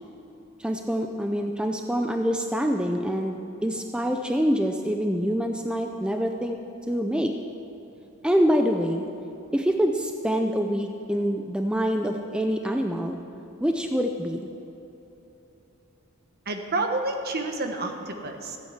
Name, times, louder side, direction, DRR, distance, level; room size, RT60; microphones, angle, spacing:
voice 1, 0.6-3.4 3.6-6.6 6.9-7.3 8.2-9.0 9.5-13.2 13.6-14.5, equal, 5° right, 4 dB, 0.5 m, -25 dB
voice 2, 16.4-18.6, right 2 dB, 45° right, 5 dB, 1.3 m, -29 dB
14.5 x 8.8 x 7.3 m, 3.0 s
head